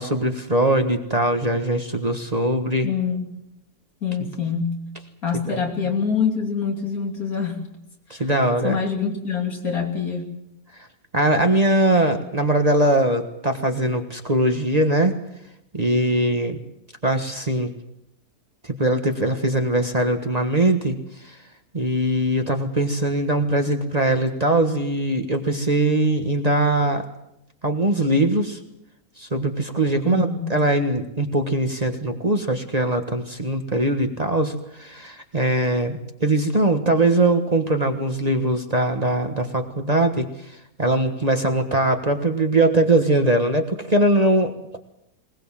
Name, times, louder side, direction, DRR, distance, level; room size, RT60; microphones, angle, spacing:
voice 1, 0.0-2.9 4.2-4.3 5.5-5.6 8.1-8.8 11.1-15.1 15.7-16.6 17.0-17.7 18.6-21.0 21.2-21.4 21.7-27.0 27.6-28.6 29.2-44.8, right 1 dB, 25° right, 5 dB, 1.5 m, -21 dB
voice 2, 2.8-3.4 4.0-4.9 5.2-7.7 8.6-10.3 30.0-30.5, left 6 dB, 70° left, 2 dB, 3.5 m, -25 dB
21.0 x 20.5 x 7.5 m, 0.84 s
omnidirectional pair, 1.6 m